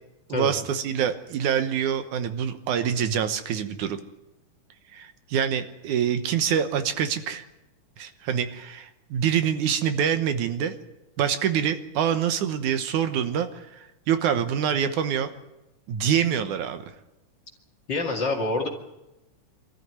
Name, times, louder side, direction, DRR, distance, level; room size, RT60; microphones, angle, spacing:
voice 1, 0.3-4.0 4.9-7.5 8.0-10.8 11.2-15.3 15.9-16.8, right 8 dB, 75° right, 9 dB, 2.5 m, -25 dB
voice 2, 17.9-18.7, left 2 dB, 35° left, 1 dB, 2.6 m, -26 dB
24.5 x 14.0 x 9.4 m, 0.97 s
omnidirectional pair, 3.6 m